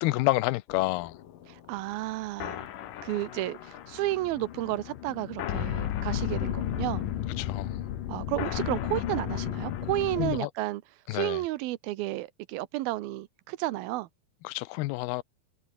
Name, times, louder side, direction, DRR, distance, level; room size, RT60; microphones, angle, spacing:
voice 1, 0.0-1.1 7.4-7.7 10.2-10.5 11.1-11.4 14.4-15.2, left 19 dB, 85° left, 2.6 m, -28 dB
sound 1, 0.7-10.4, left 11 dB, 65° left, 3.0 m, -34 dB
voice 2, 1.5-2.7 3.0-7.0 8.1-10.8 11.1-14.1, right 17 dB, 80° right, 2.6 m, -32 dB
omnidirectional pair, 4.4 m